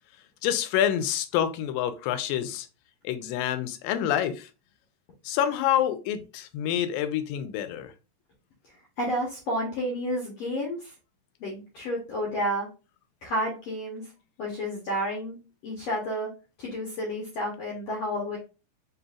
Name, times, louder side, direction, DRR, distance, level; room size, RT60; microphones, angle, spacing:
voice 1, 0.4-2.7 3.0-4.5 5.2-7.9, left 10 dB, 90° left, 2.3 m, -27 dB
voice 2, 9.0-10.9 11.4-12.7 13.2-14.0 14.4-15.4 15.6-16.3 16.6-18.4, equal, 65° left, 1.7 m, -30 dB
4.7 x 3.9 x 2.3 m
omnidirectional pair, 3.9 m